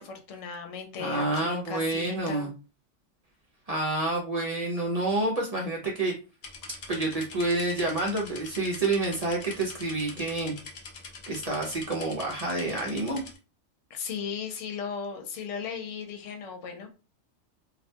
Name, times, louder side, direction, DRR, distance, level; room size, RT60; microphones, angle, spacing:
voice 1, 0.0-2.5 13.9-16.9, left 6 dB, 80° left, 4 dB, 1.0 m, -36 dB
voice 2, 1.0-2.5 3.7-6.1 6.9-10.5 11.3-13.2, right 2 dB, 45° right, -2 dB, 0.5 m, -28 dB
sound 1, 6.4-13.4, left 4 dB, 55° left, 0.6 m, -44 dB
2.3 x 2.2 x 2.7 m, 0.32 s
omnidirectional pair, 1.3 m